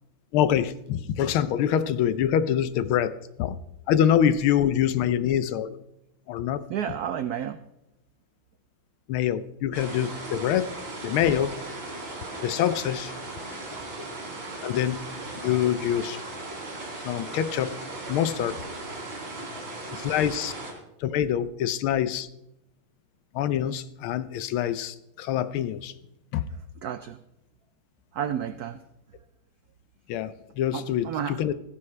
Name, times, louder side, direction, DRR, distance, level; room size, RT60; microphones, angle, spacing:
voice 1, 0.3-3.6 3.9-5.7 6.3-6.6 9.1-10.7 11.0-11.6 12.4-13.1 14.6-15.0 15.4-16.2 17.0-17.8 18.1-18.5 19.9-20.5 21.0-22.3 23.3-25.9 26.3-26.5 30.1-31.5, left 10 dB, 85° left, 14 dB, 1.5 m, -25 dB
voice 2, 6.7-7.6 26.8-27.2 28.1-28.8 30.7-31.4, right 9 dB, 90° right, 12 dB, 0.8 m, -31 dB
sound 1, 9.7-20.7, right 2 dB, 70° right, 4.0 m, -37 dB
15.5 x 14.5 x 3.3 m, 0.85 s
omnidirectional pair, 2.3 m